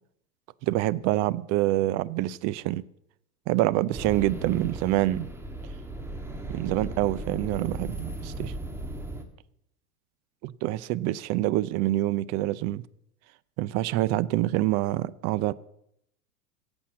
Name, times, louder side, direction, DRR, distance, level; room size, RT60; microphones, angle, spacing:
voice 1, 0.6-2.8 3.5-5.3 6.5-8.5 10.6-12.8 13.6-15.5, right 16 dB, 35° right, 0.6 m, -26 dB
sound 1, 3.9-9.2, right 2 dB, 5° right, 1.6 m, -37 dB
16.5 x 8.1 x 7.4 m
hypercardioid pair, 115°, 47 cm